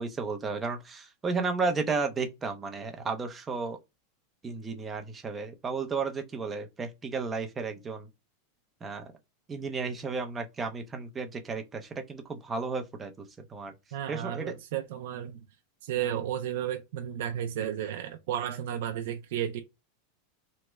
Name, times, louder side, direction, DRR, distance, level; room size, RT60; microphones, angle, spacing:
voice 1, 0.0-3.8 4.4-8.1 8.8-9.0 9.5-13.1 13.5-13.7 14.1-14.5, right 4 dB, 15° right, 0.5 m, -33 dB
voice 2, 13.9-15.4 15.8-19.6, right 10 dB, 65° right, 0.4 m, -33 dB
3.1 x 2.0 x 3.4 m
supercardioid pair, 150°, 0 cm